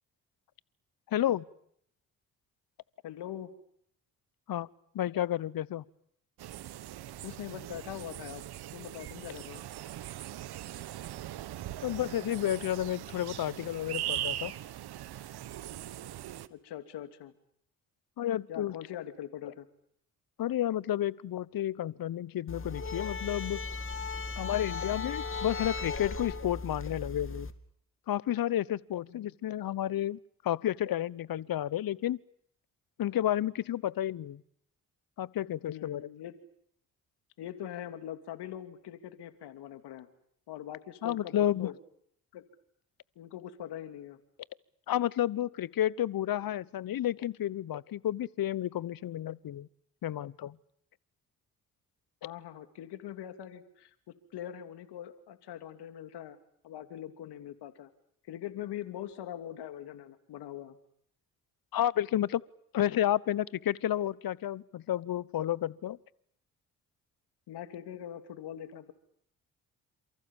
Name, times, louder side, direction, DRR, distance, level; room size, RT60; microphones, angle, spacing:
voice 1, 1.1-1.5 4.5-4.7 4.9-5.8 11.8-14.5 18.2-18.8 20.4-23.6 24.4-27.5 28.1-30.2 30.4-32.2 33.0-34.4 35.2-36.1 41.0-41.7 44.9-49.7 50.0-50.6 61.7-62.4 62.7-66.0, left 12 dB, 55° left, 1.1 m, -31 dB
voice 2, 3.0-3.5 7.2-8.4 8.7-9.6 16.5-17.3 18.5-19.7 29.0-29.3 35.7-36.3 37.4-40.1 40.5-41.7 42.3-42.4 43.2-44.2 52.2-53.9 54.3-56.4 56.6-57.9 58.3-60.8 67.5-68.9, left 11 dB, 70° left, 2.9 m, -42 dB
sound 1, 6.4-16.5, right 13 dB, 65° right, 1.4 m, -40 dB
sound 2, 22.5-27.5, left 4 dB, 30° left, 2.7 m, -37 dB
29.0 x 27.5 x 7.3 m
hypercardioid pair, 45°, 41 cm